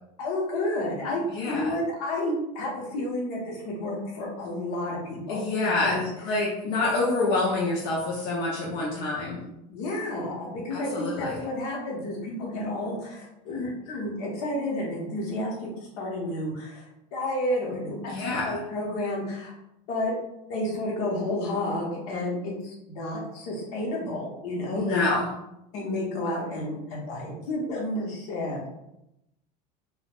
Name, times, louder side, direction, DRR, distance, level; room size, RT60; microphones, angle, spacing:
voice 1, 0.2-6.1 9.7-15.7 16.0-16.8 17.1-19.5 19.9-20.1 20.5-25.0 25.7-28.7, left 1 dB, 70° left, -2 dB, 1.1 m, -31 dB
voice 2, 1.3-1.7 5.3-9.4 10.7-11.4 18.1-18.5 24.7-25.3, left 2 dB, 55° left, -5 dB, 0.8 m, -27 dB
3.5 x 2.5 x 2.4 m, 0.84 s
hypercardioid pair, 100°, 20 cm